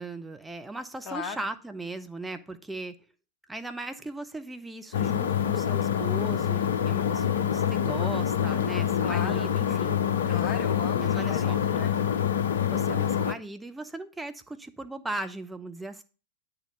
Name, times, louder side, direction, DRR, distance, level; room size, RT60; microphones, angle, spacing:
voice 1, 0.0-3.0 3.5-10.0 10.9-11.6 12.7-16.0, right 2 dB, 5° right, 8 dB, 0.7 m, -38 dB
voice 2, 1.1-1.4 9.0-9.5 10.3-11.9, left 6 dB, 35° left, 7 dB, 1.4 m, -37 dB
sound 1, 4.9-13.3, left 9 dB, 60° left, 0.6 m, -26 dB
9.3 x 3.9 x 6.6 m, 0.34 s
figure-of-eight pair, 90°, 0 cm